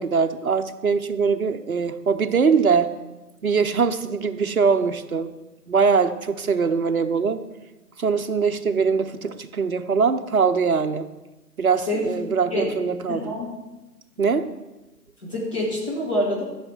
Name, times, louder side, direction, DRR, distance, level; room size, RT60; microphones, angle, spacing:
voice 1, 0.0-2.9 3.4-5.3 5.7-7.4 8.0-11.1 11.6-13.3 14.2-14.5, right 5 dB, 60° right, 8 dB, 0.8 m, -22 dB
voice 2, 13.1-13.4 15.2-16.4, left 1 dB, 20° left, -7 dB, 1.6 m, -26 dB
13.5 x 7.4 x 4.4 m, 1.1 s
figure-of-eight pair, 165°, 49 cm